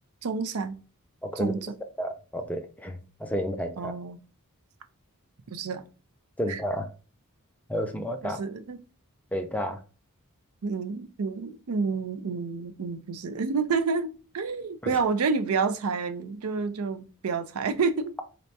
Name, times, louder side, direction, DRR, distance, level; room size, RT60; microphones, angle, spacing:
voice 1, 0.2-0.7 1.4-1.7 3.8-4.2 5.5-5.8 6.5-6.6 8.2-8.8 10.6-18.1, right 4 dB, 75° right, 0.5 m, -29 dB
voice 2, 2.0-3.9 6.4-6.9 7.7-8.4 9.3-9.8 14.8-14.9, equal, 5° left, 0.5 m, -31 dB
4.1 x 3.3 x 2.7 m
head